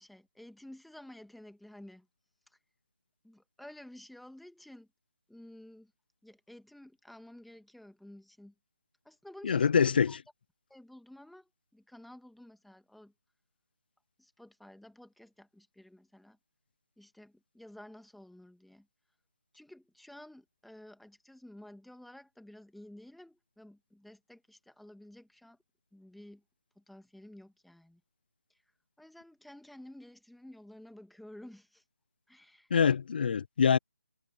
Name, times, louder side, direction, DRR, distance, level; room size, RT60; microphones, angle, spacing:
voice 1, 0.0-2.1 2.5-2.6 3.2-4.9 5.3-5.9 6.2-8.5 9.0-10.2 10.7-13.1 14.2-16.4 17.0-18.9 19.5-25.6 25.9-26.4 26.8-28.0 28.5-28.6 29.0-31.8 32.3-32.7, left 1 dB, ahead, 1.9 m, -52 dB
voice 2, 9.4-10.2 32.7-33.8, left 6 dB, 40° left, 0.5 m, -25 dB
figure-of-eight pair, 155°, 8 cm